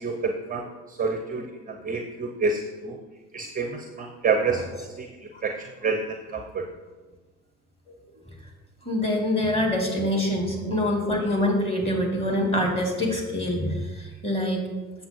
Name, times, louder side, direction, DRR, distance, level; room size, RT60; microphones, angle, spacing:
voice 1, 0.0-3.0 3.3-5.1 5.4-6.7 10.6-10.7, right 4 dB, 20° right, 5 dB, 0.7 m, -28 dB
voice 2, 8.8-14.6, left 1 dB, 15° left, -1 dB, 2.5 m, -25 dB
7.7 x 7.0 x 4.5 m, 1.2 s
hypercardioid pair, 75°, 45 cm